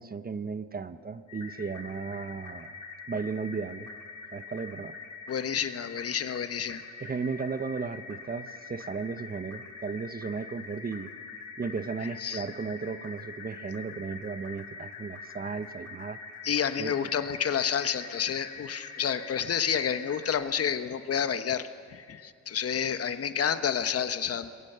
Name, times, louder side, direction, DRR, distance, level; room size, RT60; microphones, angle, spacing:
voice 1, 0.0-2.7 3.1-3.9 4.3-4.9 7.0-11.1 11.6-16.2 16.8-16.9, right 5 dB, 30° right, 12 dB, 0.9 m, -35 dB
sound 1, 1.3-20.4, left 4 dB, 85° left, 4.8 m, -44 dB
voice 2, 5.3-6.8 12.0-12.5 16.4-24.5, left 8 dB, 50° left, 10 dB, 1.2 m, -30 dB
26.5 x 22.0 x 6.8 m, 2.2 s
cardioid pair, 90°, 30 cm